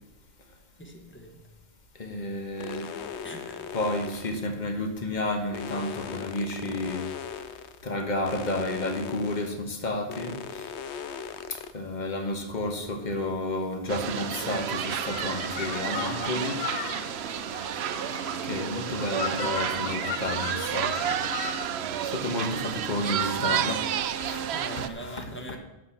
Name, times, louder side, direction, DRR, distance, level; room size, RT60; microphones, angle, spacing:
voice 1, 0.8-1.4 3.2-3.6 24.5-25.6, right 1 dB, 10° left, 3 dB, 1.4 m, -41 dB
voice 2, 2.0-2.9 3.7-7.0 7.8-10.7 11.5-16.6 18.4-21.2 21.8-23.9 24.2-25.6, left 2 dB, 45° left, 5 dB, 1.4 m, -31 dB
sound 1, 2.6-4.5 5.5-7.8 8.3-9.6 10.1-11.7, left 7 dB, 90° left, 1.0 m, -38 dB
sound 2, 13.9-24.9, right 9 dB, 75° right, 0.8 m, -31 dB
sound 3, 14.4-21.7, left 10 dB, 65° left, 0.7 m, -38 dB
11.5 x 5.1 x 7.2 m, 0.95 s
omnidirectional pair, 1.1 m